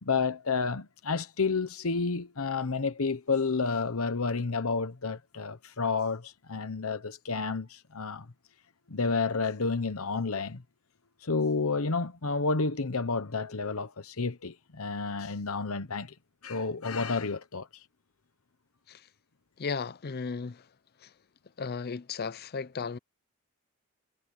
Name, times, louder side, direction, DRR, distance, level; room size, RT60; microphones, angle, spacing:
voice 1, 0.0-8.3 8.9-10.6 11.2-16.1 16.4-17.7, left 4 dB, 75° left, 1.0 m, -30 dB
voice 2, 19.6-20.6 21.0-21.1 21.6-23.0, left 5 dB, 45° left, 0.5 m, -35 dB
head